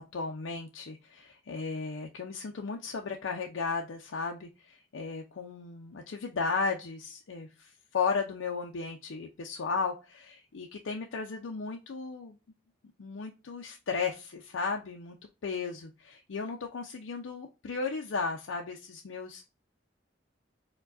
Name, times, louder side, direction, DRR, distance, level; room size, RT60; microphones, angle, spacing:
voice 1, 0.1-12.4 13.0-15.2 15.4-19.5, left 4 dB, 90° left, 2 dB, 0.5 m, -35 dB
4.5 x 2.2 x 2.5 m, 0.29 s
head